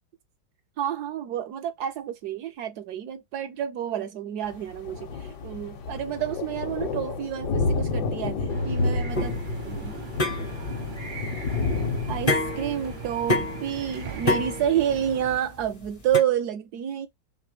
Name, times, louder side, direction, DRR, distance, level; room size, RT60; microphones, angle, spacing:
voice 1, 0.8-9.9 12.1-17.1, right 10 dB, 70° right, 1.0 m, -29 dB
Thunder, 4.5-14.4, left 3 dB, 70° left, 1.5 m, -30 dB
sound 1, 8.5-15.4, right 6 dB, 45° right, 0.6 m, -40 dB
sound 2, 9.1-16.2, left 2 dB, 30° left, 0.6 m, -29 dB
3.3 x 3.2 x 4.8 m
omnidirectional pair, 2.0 m